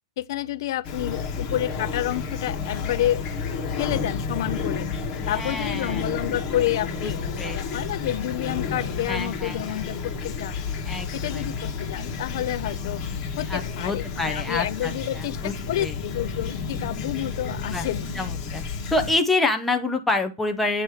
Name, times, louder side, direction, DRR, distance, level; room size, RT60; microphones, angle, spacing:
voice 1, 0.2-3.2 3.8-4.9 5.3-10.6 11.1-13.0 13.4-18.1, left 13 dB, 55° left, 0.5 m, -29 dB
Fowl / Chirp tweet, 0.8-19.1, left 5 dB, 25° left, 1.3 m, -31 dB
voice 2, 5.2-6.1 7.0-7.1 7.4-7.6 9.1-9.8 10.8-11.4 13.5-15.5 15.8-15.9 17.7-17.9 18.1-18.6 18.9-20.8, left 2 dB, 5° left, 0.6 m, -27 dB
8.2 x 3.0 x 4.7 m
hypercardioid pair, 160°, 3 cm